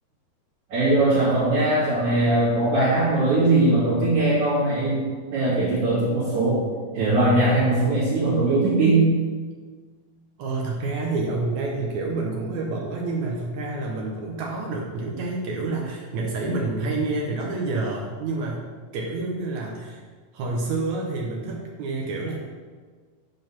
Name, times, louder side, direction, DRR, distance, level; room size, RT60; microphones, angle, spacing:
voice 1, 0.7-5.0 5.3-6.6 6.9-9.1, right 2 dB, 50° right, -10 dB, 3.0 m, -20 dB
voice 2, 10.4-18.6 18.9-20.0 20.3-22.4, right 3 dB, 85° right, -1 dB, 1.6 m, -28 dB
9.3 x 5.3 x 5.9 m, 1.5 s
omnidirectional pair, 4.8 m